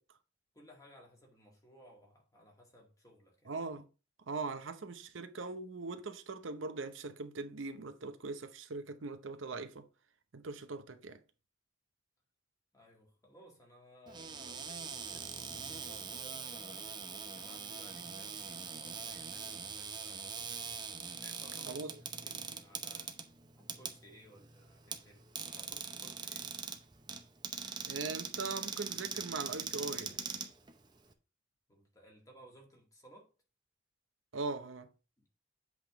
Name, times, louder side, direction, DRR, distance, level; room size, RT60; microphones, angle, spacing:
voice 1, 0.5-3.6 12.7-17.1 17.3-20.8 21.2-23.2 23.5-26.5 31.7-33.3 35.2-35.3, equal, 15° left, 1.9 m, -60 dB
voice 2, 3.5-3.9 4.3-9.8 10.3-11.2 21.7-21.9 27.9-30.2 34.3-34.9, right 3 dB, 85° right, 0.8 m, -40 dB
Cupboard open or close, 14.1-31.1, right 6 dB, 20° right, 0.7 m, -42 dB
8.1 x 3.6 x 4.7 m
head